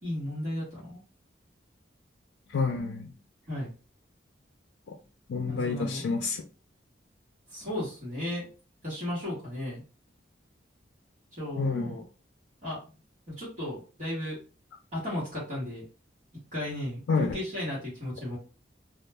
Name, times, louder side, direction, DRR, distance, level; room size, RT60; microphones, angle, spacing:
voice 1, 0.0-1.0 3.5-3.7 5.4-6.0 7.5-8.5 8.8-9.8 11.3-12.0 12.6-12.8 13.3-14.4 14.9-15.8 16.5-18.4, left 1 dB, 40° right, -7 dB, 1.1 m, -34 dB
voice 2, 2.5-3.1 4.9-5.0 5.3-6.4 11.6-12.0 17.1-17.4, left 4 dB, 85° left, 4 dB, 0.4 m, -29 dB
2.3 x 2.1 x 3.3 m, 0.35 s
head